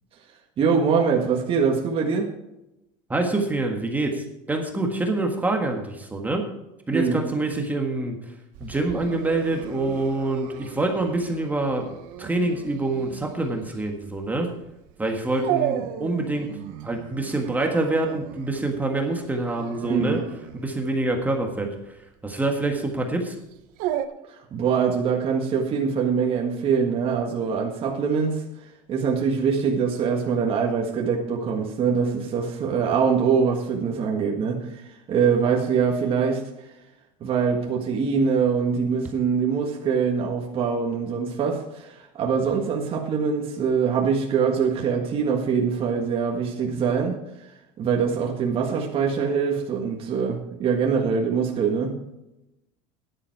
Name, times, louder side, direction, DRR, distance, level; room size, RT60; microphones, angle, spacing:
voice 1, 0.6-2.3 6.9-7.3 19.8-20.2 24.3-28.4 28.9-36.5 37.2-47.2 47.8-52.0, right 6 dB, 35° right, 0 dB, 1.6 m, -23 dB
voice 2, 3.1-6.4 6.9-8.2 8.6-14.5 15.0-16.5 16.8-20.2 20.6-21.7 22.2-23.3, right 2 dB, 10° right, 2 dB, 1.6 m, -26 dB
Dog, 8.5-24.1, right 12 dB, 65° right, 1.0 m, -35 dB
12.5 x 10.5 x 4.6 m, 0.92 s
supercardioid pair, 135°, 16 cm